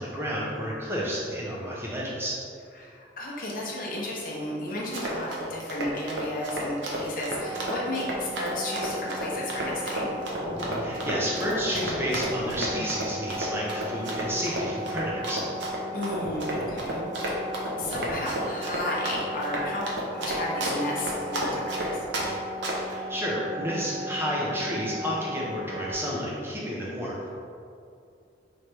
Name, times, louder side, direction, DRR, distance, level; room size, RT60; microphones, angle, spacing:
voice 1, 0.0-2.4 10.8-15.5 22.8-27.3, equal, 10° right, -5 dB, 0.7 m, -31 dB
voice 2, 2.7-10.2 15.6-22.0, left 1 dB, 45° left, -4 dB, 0.8 m, -33 dB
Run, 4.7-22.3 22.6-22.9, right 1 dB, 75° right, 0.8 m, -32 dB
sound 1, 7.4-25.9, equal, 45° right, 0.7 m, -37 dB
3.2 x 3.2 x 4.3 m, 2.4 s
head